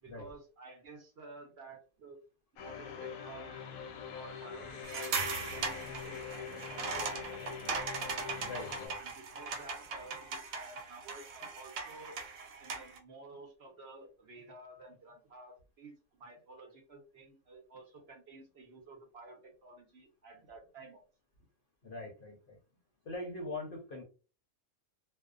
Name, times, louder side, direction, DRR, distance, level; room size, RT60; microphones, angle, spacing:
voice 1, 0.0-2.2 2.6-7.7 8.9-12.2 12.6-21.0 21.4-21.5, right 3 dB, 55° right, 1 dB, 0.9 m, -53 dB
sound 1, 2.6-8.9, left 7 dB, 90° left, 1.0 m, -44 dB
sound 2, 4.8-13.0, right 4 dB, 85° right, 1.1 m, -39 dB
voice 2, 8.4-9.0 21.8-22.6 23.0-24.0, left 2 dB, 55° left, 0 dB, 0.7 m, -42 dB
2.4 x 2.1 x 2.4 m, 0.35 s
omnidirectional pair, 1.4 m